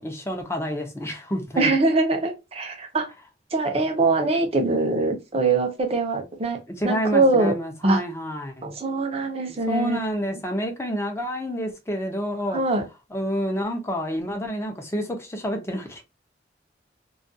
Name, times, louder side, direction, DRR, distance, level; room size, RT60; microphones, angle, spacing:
voice 1, 0.0-1.7 6.8-8.7 9.7-12.6 13.1-16.0, equal, 15° left, 0.5 m, -28 dB
voice 2, 1.6-3.1 3.5-7.6 7.8-8.0 8.6-10.1 12.5-12.8, right 3 dB, 35° right, 0.6 m, -23 dB
2.3 x 2.2 x 2.6 m
head